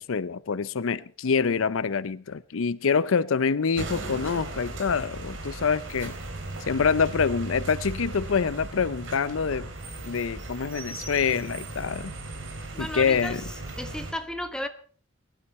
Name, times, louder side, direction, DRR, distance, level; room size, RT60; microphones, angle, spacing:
voice 1, 0.0-6.2 6.7-9.7 10.0-12.1 12.8-13.4, left 5 dB, 90° left, 0.6 m, -26 dB
sound 1, 3.8-14.1, right 2 dB, 70° right, 2.9 m, -37 dB
voice 2, 12.7-13.4 13.8-14.7, left 1 dB, 5° left, 1.2 m, -33 dB
20.0 x 11.5 x 4.2 m
head